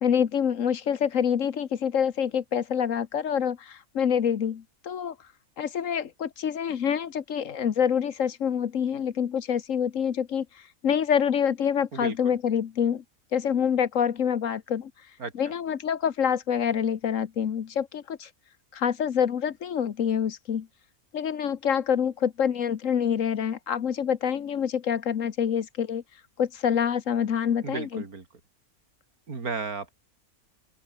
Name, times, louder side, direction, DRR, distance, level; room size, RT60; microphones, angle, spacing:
voice 1, 0.0-5.1 5.6-10.5 10.8-13.0 13.3-14.9 15.3-18.3 18.7-20.7 21.1-26.0 26.4-28.0, left 8 dB, 65° left, 1.4 m, -26 dB
voice 2, 11.9-12.3 15.2-15.3 27.6-28.2 29.3-29.9, right 4 dB, 85° right, 3.3 m, -34 dB
open air
omnidirectional pair, 1.5 m